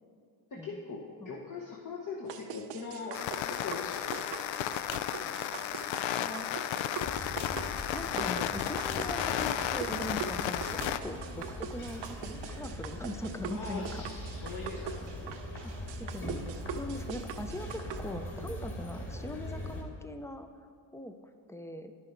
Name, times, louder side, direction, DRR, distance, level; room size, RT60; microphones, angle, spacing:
voice 1, 0.5-3.2 3.5-4.2 13.5-15.3, left 4 dB, 40° left, -1 dB, 1.1 m, -41 dB
sound 1, 2.3-18.0, right 8 dB, 60° right, 0.7 m, -43 dB
sound 2, 3.1-11.0, left 11 dB, 70° left, 0.5 m, -33 dB
sound 3, 7.0-19.8, equal, 25° left, 2.1 m, -41 dB
voice 2, 7.9-14.0 15.6-15.7 16.0-16.4 16.7-20.5 20.9-21.2 21.5-21.9, left 1 dB, 5° left, 8 dB, 0.5 m, -41 dB
10.5 x 6.2 x 4.5 m, 2.2 s
supercardioid pair, 75°, 48 cm